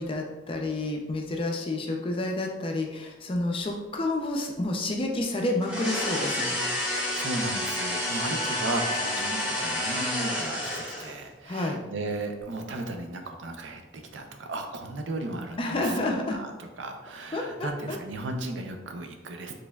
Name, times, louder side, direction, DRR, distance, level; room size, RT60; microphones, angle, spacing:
voice 1, 0.0-6.6 11.5-11.8 15.6-16.4 17.3-18.0, left 2 dB, 30° left, 2 dB, 0.4 m, -29 dB
sound 1, 5.6-11.2, left 1 dB, 5° right, 0.8 m, -29 dB
voice 2, 7.0-19.5, right 2 dB, 85° right, 5 dB, 0.5 m, -35 dB
4.2 x 3.3 x 2.3 m, 1.1 s
head